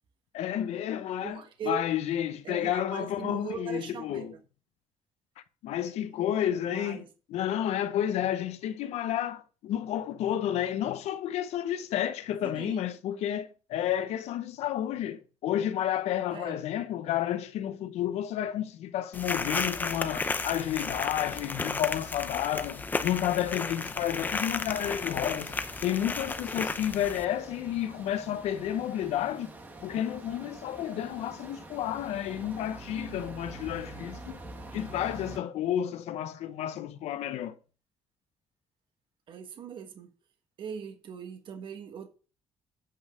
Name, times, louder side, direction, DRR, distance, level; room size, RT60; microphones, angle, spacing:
voice 1, 0.3-4.3 5.6-25.5 25.8-29.5 29.8-34.4 34.7-37.6, left 11 dB, 85° left, 0.8 m, -31 dB
voice 2, 1.2-1.9 2.4-4.4 6.6-7.1 12.4-12.8 16.3-16.6 39.3-40.1 40.6-42.1, right 6 dB, 50° right, 1.3 m, -40 dB
sound 1, 19.1-27.2, left 3 dB, 15° left, 0.6 m, -33 dB
sound 2, 24.2-35.4, right 2 dB, 15° right, 1.4 m, -46 dB
8.6 x 5.5 x 5.0 m
cardioid pair, 165°, 11 cm